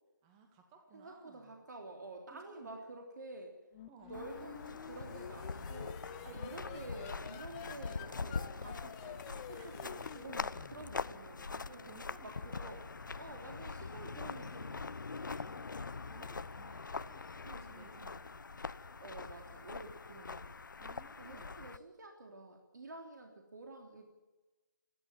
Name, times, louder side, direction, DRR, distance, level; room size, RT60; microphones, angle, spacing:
voice 1, 0.2-1.6 2.3-2.8 3.9-4.2 6.2-7.3 9.5-9.7 11.5-13.3 15.3-19.2 20.8-21.5, right 4 dB, 15° right, 4 dB, 2.3 m, -61 dB
voice 2, 0.9-3.5 4.1-11.9 12.2-12.8 13.2-15.1 17.4-18.2 19.0-20.5 21.2-24.0, right 2 dB, 60° right, 2 dB, 3.2 m, -50 dB
sound 1, 3.7-11.4, left 10 dB, 15° left, 1.0 m, -50 dB
sound 2, 4.1-21.8, left 4 dB, 70° left, 0.9 m, -43 dB
28.5 x 11.5 x 9.0 m, 1.2 s
figure-of-eight pair, 160°, 11 cm